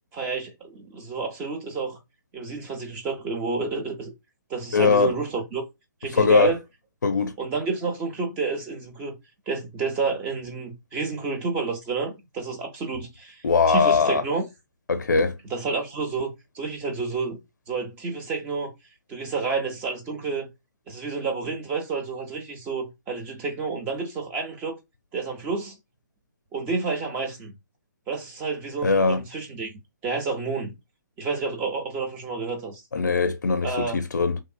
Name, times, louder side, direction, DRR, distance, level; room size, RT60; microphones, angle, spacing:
voice 1, 0.1-2.0 2.3-4.1 4.5-5.6 6.0-6.6 7.4-9.2 9.5-14.5 15.5-17.4 17.7-18.7 19.1-20.5 20.9-24.8 25.1-25.7 26.5-27.5 28.1-29.7 30.0-30.7 31.2-32.8 33.6-34.0, right 4 dB, 15° right, 0.6 m, -30 dB
voice 2, 4.7-5.1 6.1-6.5 7.0-7.3 13.4-14.2 14.9-15.4 28.8-29.2 32.9-34.4, left 4 dB, 65° left, 0.4 m, -21 dB
2.8 x 2.3 x 2.3 m
figure-of-eight pair, 135°, 10 cm